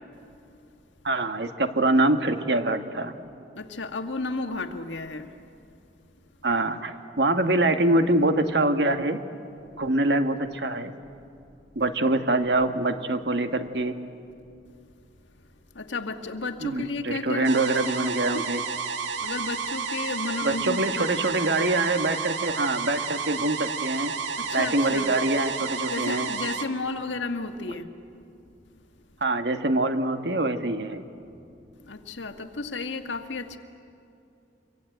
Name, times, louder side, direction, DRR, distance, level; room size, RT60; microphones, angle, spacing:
voice 1, 1.0-3.1 6.4-9.2 9.7-10.9 11.7-14.0 16.6-18.6 20.4-24.1 24.5-26.3 29.2-31.0, right 2 dB, 65° right, 8 dB, 1.5 m, -24 dB
voice 2, 3.5-5.3 15.7-18.5 19.2-21.2 24.4-25.1 25.9-27.9 31.9-33.6, left 3 dB, 90° left, 6 dB, 1.7 m, -33 dB
sound 1, 17.4-26.7, right 5 dB, 85° right, 1.7 m, -31 dB
27.0 x 23.0 x 9.2 m, 2.6 s
head